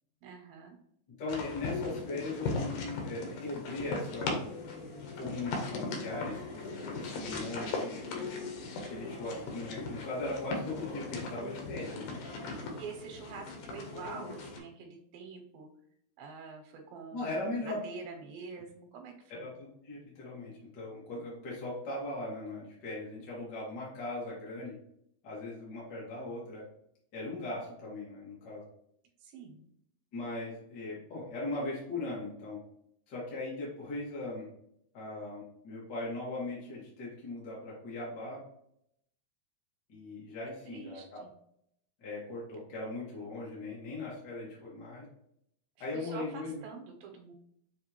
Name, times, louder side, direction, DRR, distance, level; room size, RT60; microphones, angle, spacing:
voice 1, 0.2-0.8 12.7-15.7 16.2-17.3 17.6-19.5 29.2-29.6 40.7-41.3 45.9-47.3, right 5 dB, 90° right, 3 dB, 2.4 m, -46 dB
voice 2, 1.2-4.4 5.1-6.6 6.9-8.2 8.9-12.2 17.1-17.8 19.3-24.7 25.2-26.6 27.1-28.6 30.1-32.6 33.1-34.5 34.9-38.4 39.9-41.2 42.0-45.0 45.8-46.6, left 2 dB, 50° left, -6 dB, 1.3 m, -39 dB
sound 1, 1.3-14.6, left 3 dB, 90° left, 2.7 m, -38 dB
6.6 x 2.7 x 2.8 m, 0.72 s
omnidirectional pair, 4.0 m